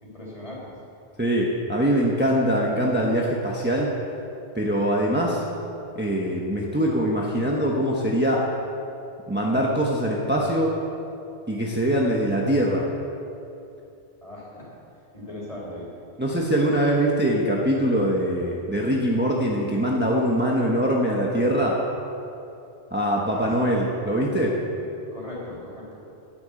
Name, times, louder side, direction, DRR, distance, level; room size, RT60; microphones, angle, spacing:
voice 1, 0.0-0.7 14.2-14.8 15.1-16.6 23.3-23.8 25.1-25.9, left 1 dB, 35° left, -5 dB, 3.8 m, -38 dB
voice 2, 1.2-3.9 4.5-5.4 5.9-8.5 9.3-10.7 11.5-12.9 16.2-21.8 22.9-24.6, equal, 10° right, -3 dB, 1.1 m, -23 dB
10.5 x 10.0 x 7.7 m, 2.8 s
omnidirectional pair, 1.1 m